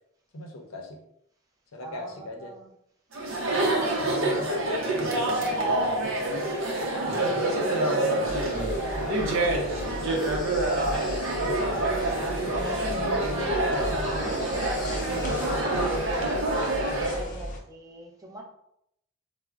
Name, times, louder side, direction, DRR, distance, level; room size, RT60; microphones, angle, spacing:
voice 1, 0.3-1.0 1.7-2.5 3.4-6.5 8.4-11.2 11.6-13.2 13.6-16.2, left 2 dB, 85° left, 3 dB, 0.6 m, -39 dB
voice 2, 1.8-2.7 3.5-4.0 6.8-7.3 7.9-8.4 17.2-18.4, right 2 dB, 15° right, -2 dB, 0.6 m, -42 dB
Chatter, 3.1-17.3, right 1 dB, 65° right, 0.6 m, -27 dB
sound 1, 8.3-17.6, equal, 40° left, 0.5 m, -37 dB
4.6 x 2.0 x 2.3 m, 0.75 s
head